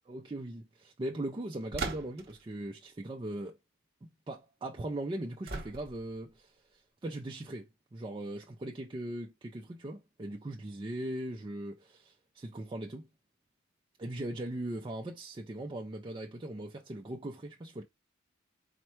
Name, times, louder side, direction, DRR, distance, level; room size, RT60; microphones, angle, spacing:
voice 1, 0.1-3.6 4.0-13.1 14.0-17.8, right 1 dB, 25° right, 0.4 m, -39 dB
sound 1, 1.7-2.4 5.5-6.2, right 3 dB, 50° right, 1.0 m, -38 dB
4.3 x 2.2 x 4.3 m
head